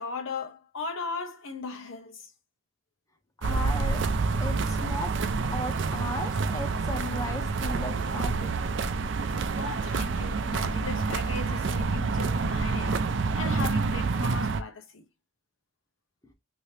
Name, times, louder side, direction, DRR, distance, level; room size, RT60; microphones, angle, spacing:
voice 1, 0.0-2.3 9.3-13.1 13.3-15.0, left 4 dB, 75° left, 0.9 m, -37 dB
voice 2, 3.4-4.0 4.4-5.1 5.5-8.5, left 1 dB, 15° left, 0.6 m, -36 dB
sound 1, 3.4-14.6, right 4 dB, 60° right, 0.4 m, -28 dB
2.9 x 2.8 x 3.2 m
head